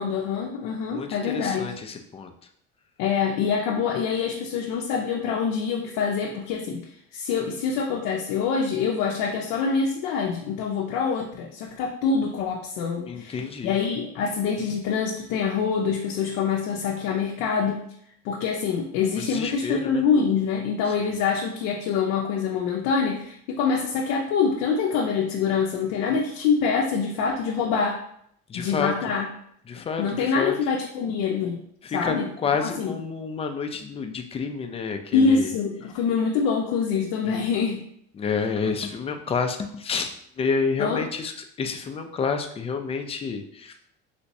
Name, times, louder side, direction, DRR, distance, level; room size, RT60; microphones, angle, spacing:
voice 1, 0.0-1.7 3.0-13.4 13.6-17.8 18.2-28.0 28.5-29.3 30.0-31.6 31.9-32.3 32.6-32.9 35.1-37.8 40.8-41.0, left 5 dB, 80° left, 1 dB, 0.5 m, -25 dB
voice 2, 0.9-2.3 13.1-13.8 19.2-20.0 20.9-21.0 28.5-28.9 29.7-30.6 31.8-35.5 37.2-37.5 38.1-41.3 41.6-43.7, left 5 dB, 20° left, 5 dB, 0.3 m, -29 dB
3.4 x 2.9 x 2.7 m, 0.68 s
cardioid pair, 120°, 30 cm